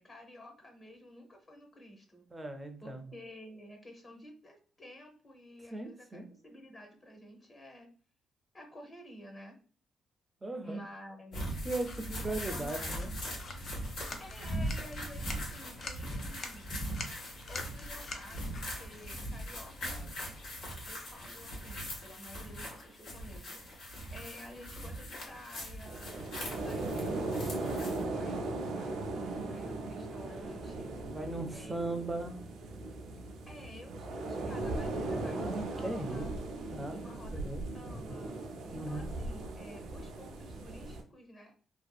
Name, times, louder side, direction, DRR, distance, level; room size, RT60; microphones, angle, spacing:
voice 1, 0.0-2.3 2.8-7.9 8.5-9.6 10.6-11.7 12.1-13.1 14.2-16.7 17.5-20.1 20.9-23.6 24.1-26.2 26.5-30.9 31.5-32.2 33.5-36.3 36.9-38.3 38.6-41.5, equal, 30° left, 3 dB, 0.8 m, -51 dB
voice 2, 2.3-3.0 5.7-6.2 10.4-10.8 11.6-13.1 26.8-27.1 31.1-32.3 35.0-36.3 36.7-37.6 38.7-39.1, right 2 dB, 15° right, 6 dB, 0.4 m, -38 dB
sound 1, 11.3-28.0, equal, 75° left, 1.2 m, -40 dB
sound 2, 11.8-20.9, left 3 dB, 50° left, 0.4 m, -48 dB
sound 3, 25.8-41.0, right 2 dB, 80° right, 0.4 m, -38 dB
2.6 x 2.3 x 2.3 m, 0.41 s
cardioid pair, 95°, 0 cm